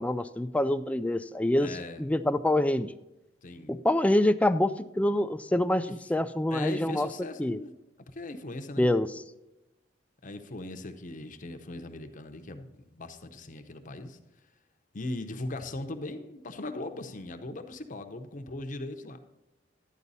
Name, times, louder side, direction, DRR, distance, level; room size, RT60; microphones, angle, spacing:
voice 1, 0.0-1.7 2.0-3.0 3.7-7.1 7.4-7.6 8.8-9.1, left 1 dB, 5° left, 12 dB, 0.3 m, -26 dB
voice 2, 1.6-2.1 3.4-3.8 5.9-6.0 6.5-7.7 8.1-8.9 10.2-14.2 14.9-19.2, left 2 dB, 45° left, 6 dB, 0.8 m, -39 dB
12.0 x 9.1 x 4.1 m, 0.97 s
head